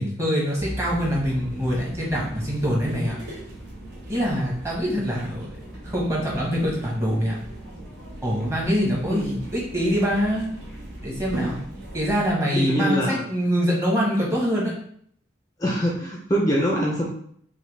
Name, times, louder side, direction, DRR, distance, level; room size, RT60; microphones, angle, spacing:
voice 1, 0.0-3.2 4.1-7.3 8.2-10.5 11.0-11.6 11.9-14.7, equal, 15° right, -4 dB, 1.2 m, -24 dB
sound 1, 0.6-12.3, right 1 dB, 55° right, 1.4 m, -38 dB
voice 2, 9.1-9.4 12.5-13.2 15.6-17.1, equal, 20° left, -3 dB, 0.5 m, -24 dB
5.5 x 2.3 x 3.3 m, 0.64 s
head